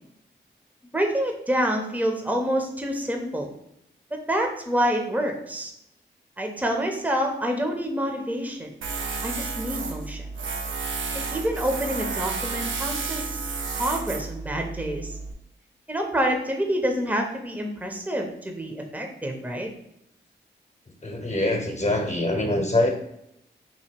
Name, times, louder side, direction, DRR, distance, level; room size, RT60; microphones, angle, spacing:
voice 1, 0.9-3.5 4.1-5.7 6.4-8.7 9.2-10.3 11.1-13.5 13.7-15.1 15.9-19.7, equal, 10° right, 2 dB, 0.7 m, -27 dB
Tools, 8.8-15.3, right 4 dB, 85° right, 0.5 m, -31 dB
voice 2, 21.0-22.9, left 1 dB, 35° left, 2 dB, 0.9 m, -24 dB
2.9 x 2.7 x 4.4 m, 0.78 s
cardioid pair, 45°, 20 cm